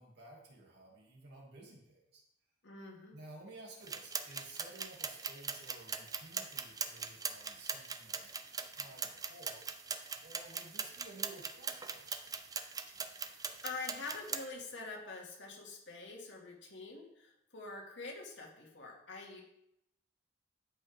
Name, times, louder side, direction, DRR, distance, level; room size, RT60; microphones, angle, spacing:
voice 1, 0.0-2.2 3.1-8.3 8.6-9.6 10.2-12.1, right 2 dB, 65° right, -2 dB, 2.5 m, -54 dB
voice 2, 2.6-3.2 12.9-19.4, left 3 dB, 85° left, -1 dB, 2.2 m, -46 dB
sound 1, 3.8-14.5, right 5 dB, 20° right, 0.5 m, -41 dB
12.5 x 5.5 x 3.5 m, 0.80 s
head